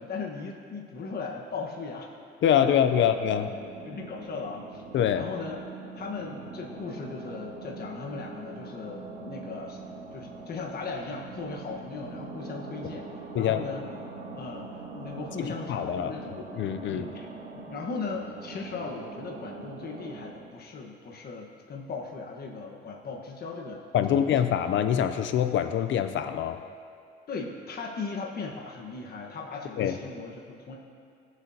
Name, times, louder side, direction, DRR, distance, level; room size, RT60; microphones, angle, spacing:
voice 1, 0.0-2.1 2.7-3.1 3.8-4.8 5.1-5.6 5.9-9.8 10.1-13.9 14.3-16.4 16.9-17.3 17.5-24.3 27.3-30.8, left 4 dB, 50° left, 0 dB, 1.4 m, -38 dB
voice 2, 2.4-3.5 4.9-5.3 13.3-13.6 15.4-16.1 16.5-17.1 23.9-26.6 29.8-29.9, left 9 dB, 70° left, 9 dB, 0.6 m, -25 dB
sound 1, 2.9-20.3, right 3 dB, 85° right, 2.7 m, -42 dB
18.5 x 8.0 x 2.9 m, 2.3 s
cardioid pair, 90°, 20 cm